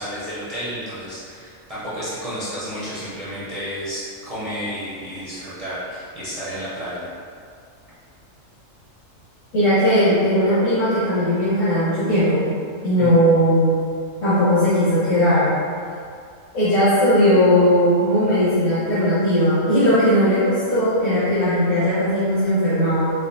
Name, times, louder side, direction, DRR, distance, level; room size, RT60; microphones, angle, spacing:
voice 1, 0.0-7.0 13.0-13.1, equal, 35° right, -12 dB, 0.7 m, -31 dB
voice 2, 9.5-12.5 12.8-13.7 14.2-15.5 16.5-23.1, equal, 80° left, -15 dB, 1.5 m, -18 dB
5.0 x 2.2 x 2.7 m, 2.3 s
omnidirectional pair, 1.4 m